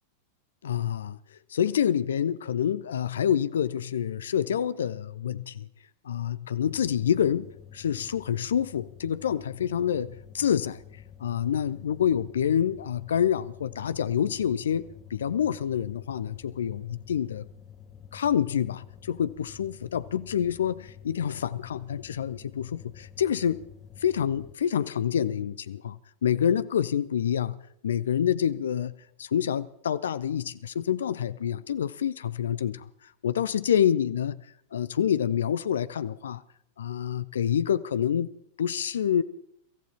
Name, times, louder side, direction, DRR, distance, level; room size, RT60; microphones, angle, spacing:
voice 1, 0.6-1.2 1.5-5.7 6.1-7.5 7.7-10.8 11.2-14.9 15.1-17.4 18.1-23.6 24.0-27.6 27.8-32.8 33.2-34.4 34.7-36.4 36.8-38.3 38.6-39.2, left 9 dB, 65° left, 0.6 m, -27 dB
sound 1, 6.7-24.5, left 8 dB, 25° left, 1.7 m, -49 dB
23.5 x 14.5 x 4.3 m
figure-of-eight pair, 90°, 0 cm